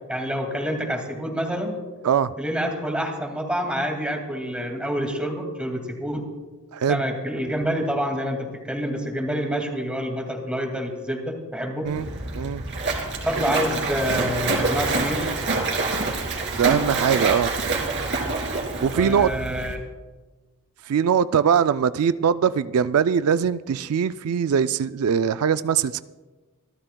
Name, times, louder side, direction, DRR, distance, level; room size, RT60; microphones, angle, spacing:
voice 1, 0.1-1.8 2.4-6.2 6.9-11.9 13.2-15.3 18.7-19.8, equal, 5° right, 2 dB, 2.2 m, -27 dB
Splash splatter, 11.9-19.7, right 3 dB, 55° right, 2.7 m, -26 dB
voice 2, 16.5-17.5 18.8-19.3 20.9-26.0, right 7 dB, 85° right, 13 dB, 0.4 m, -21 dB
27.0 x 12.5 x 2.2 m, 1.3 s
head